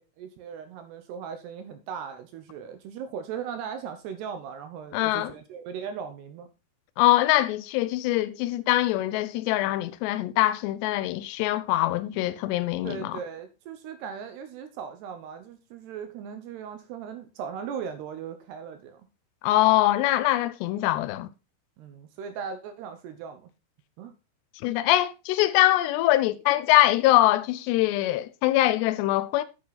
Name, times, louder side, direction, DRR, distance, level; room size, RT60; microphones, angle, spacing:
voice 1, 0.0-6.5 12.8-19.1 21.8-23.5 24.0-24.1, right 7 dB, 70° right, 2.7 m, -38 dB
voice 2, 4.9-5.3 7.0-13.2 19.4-21.3 24.6-29.4, left 16 dB, 85° left, 2.4 m, -23 dB
9.6 x 8.7 x 4.1 m
omnidirectional pair, 5.7 m